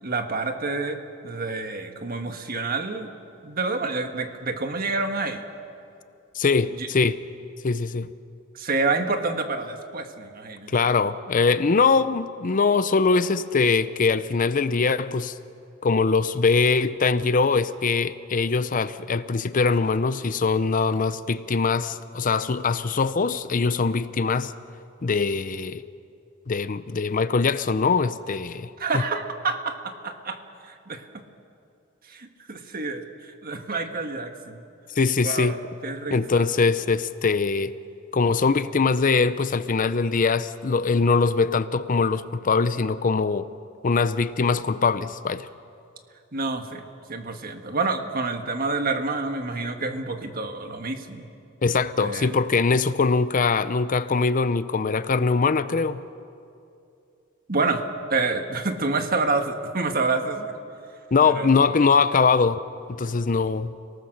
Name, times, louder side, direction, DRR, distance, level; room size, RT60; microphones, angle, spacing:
voice 1, 0.0-3.1 3.4-5.4 6.8-6.9 8.5-10.7 28.8-31.1 32.1-34.6 35.2-35.6 35.8-36.5 46.3-46.8 47.1-51.3 52.0-52.3 57.5-57.8 58.1-60.5 61.2-61.8, right 3 dB, 45° right, 1.6 m, -28 dB
voice 2, 6.3-7.2 7.6-8.1 10.7-15.4 15.8-24.5 25.0-25.8 26.5-28.7 28.9-29.0 35.0-35.6 36.1-37.7 38.1-43.5 43.8-45.5 51.6-56.0 61.1-62.6 62.9-63.7, left 4 dB, 40° left, 0.6 m, -22 dB
29.5 x 18.5 x 6.5 m
head